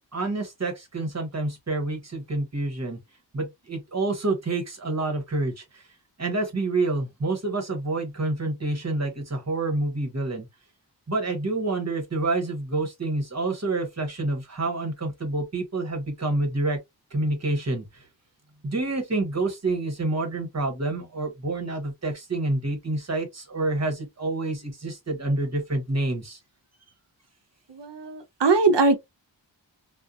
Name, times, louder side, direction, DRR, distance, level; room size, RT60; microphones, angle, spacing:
voice 1, 0.1-3.0 3.3-5.8 6.2-10.5 11.1-16.8 17.1-18.0 18.6-26.4, right 2 dB, 35° right, 1.0 m, -28 dB
voice 2, 27.7-29.0, right 3 dB, 70° right, 0.7 m, -21 dB
2.6 x 2.1 x 2.3 m
wide cardioid pair, 50°, 44 cm